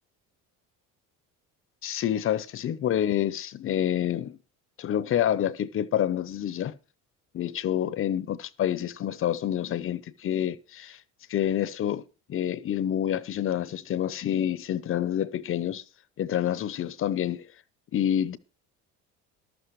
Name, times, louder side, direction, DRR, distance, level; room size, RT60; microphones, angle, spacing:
voice 1, 1.8-4.4 4.8-6.7 7.3-11.0 11.3-12.0 12.3-15.8 16.2-17.5 17.9-18.4, left 10 dB, 35° left, 0.8 m, -28 dB
14.0 x 12.0 x 3.2 m
cardioid pair, 150°, 35 cm